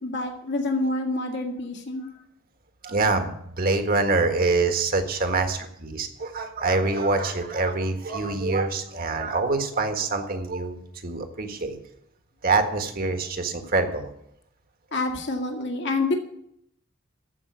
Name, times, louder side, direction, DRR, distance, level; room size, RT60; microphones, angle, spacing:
voice 1, 0.0-2.1 14.9-16.1, left 2 dB, 60° left, 2 dB, 2.1 m, -27 dB
voice 2, 2.8-11.8 12.4-14.1, right 3 dB, 45° right, 6 dB, 1.6 m, -25 dB
14.5 x 5.5 x 9.4 m, 0.75 s
head